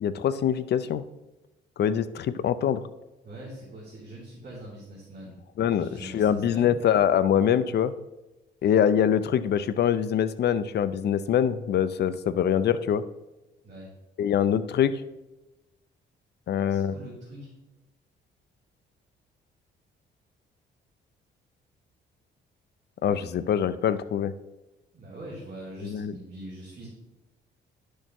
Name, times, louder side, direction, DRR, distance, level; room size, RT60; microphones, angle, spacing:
voice 1, 0.0-1.0 1.8-2.8 5.6-7.9 8.6-13.0 14.2-15.0 16.5-16.9 23.0-24.3 25.8-26.1, left 9 dB, 55° left, 14 dB, 0.5 m, -24 dB
voice 2, 3.2-5.4 5.7-6.7 13.6-13.9 16.7-17.5 24.9-26.9, right 1 dB, 40° right, -8 dB, 3.1 m, -43 dB
10.0 x 6.5 x 3.0 m, 1.0 s
cardioid pair, 90°, 20 cm